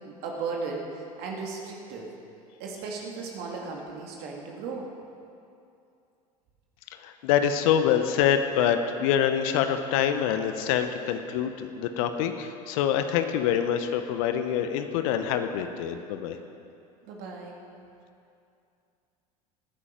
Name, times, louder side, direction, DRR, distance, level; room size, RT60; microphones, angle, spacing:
voice 1, 0.0-2.1 2.6-4.9 17.0-17.6, right 4 dB, 60° right, -1 dB, 2.1 m, -36 dB
voice 2, 7.0-16.4, left 9 dB, 65° left, 8 dB, 1.0 m, -25 dB
18.0 x 10.0 x 5.2 m, 2.6 s
hypercardioid pair, 75°, 19 cm